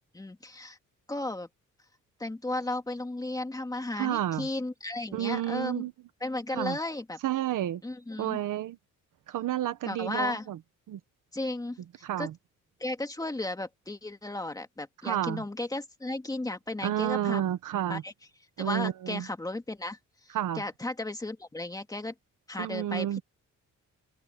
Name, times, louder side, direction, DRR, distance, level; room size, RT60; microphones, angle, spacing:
voice 1, 0.1-0.8 1.1-1.5 2.2-5.8 6.2-7.2 7.8-8.4 9.8-10.5 11.3-11.8 12.2-12.3 12.8-17.4 17.9-18.1 18.6-22.1 22.5-23.2, left 2 dB, 10° left, 2.2 m, -34 dB
voice 2, 4.0-4.5 5.1-5.9 6.5-6.8 7.2-7.8 8.2-8.8 9.3-10.6 10.9-11.0 12.0-12.3 15.0-15.4 16.8-18.0 18.6-19.3 20.3-20.6 22.6-23.2, right 12 dB, 75° right, 1.3 m, -30 dB
cardioid pair, 155°, 32 cm